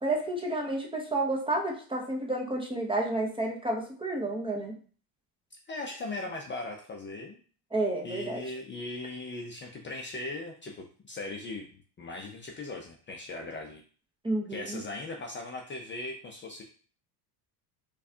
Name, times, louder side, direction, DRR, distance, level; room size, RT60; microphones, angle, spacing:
voice 1, 0.0-4.8 7.7-8.4 14.2-14.8, right 2 dB, 10° right, 0 dB, 0.7 m, -30 dB
voice 2, 5.7-7.4 8.0-13.8 14.5-16.6, left 2 dB, 25° left, 0 dB, 0.5 m, -39 dB
4.6 x 2.4 x 2.7 m, 0.41 s
supercardioid pair, 115°, 46 cm